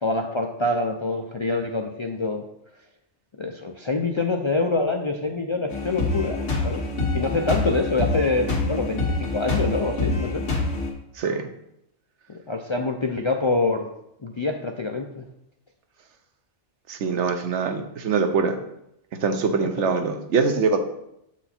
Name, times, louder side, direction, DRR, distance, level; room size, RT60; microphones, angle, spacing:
voice 1, 0.0-2.4 3.4-6.8 7.1-10.4 12.3-13.9 14.2-15.3 19.6-19.7, left 3 dB, 50° left, 2 dB, 0.3 m, -26 dB
sound 1, 5.7-10.9, left 3 dB, 90° left, 1.7 m, -26 dB
voice 2, 11.2-11.5 16.9-18.6 19.2-20.8, right 5 dB, 75° right, 7 dB, 1.1 m, -23 dB
7.8 x 4.6 x 4.3 m, 0.80 s
omnidirectional pair, 1.2 m